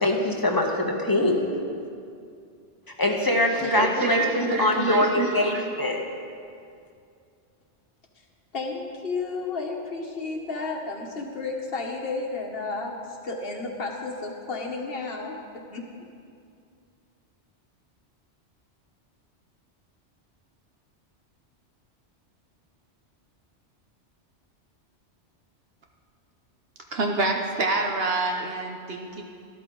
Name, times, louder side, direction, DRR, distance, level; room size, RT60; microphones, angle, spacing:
voice 1, 0.0-1.5 3.0-6.1, left 1 dB, 20° left, 1 dB, 1.1 m, -23 dB
voice 2, 3.7-5.7 26.9-29.2, right 3 dB, 60° right, 2 dB, 1.0 m, -27 dB
voice 3, 8.5-16.0, left 3 dB, 55° left, 1 dB, 1.5 m, -32 dB
13.0 x 12.5 x 3.8 m, 2.4 s
omnidirectional pair, 1.2 m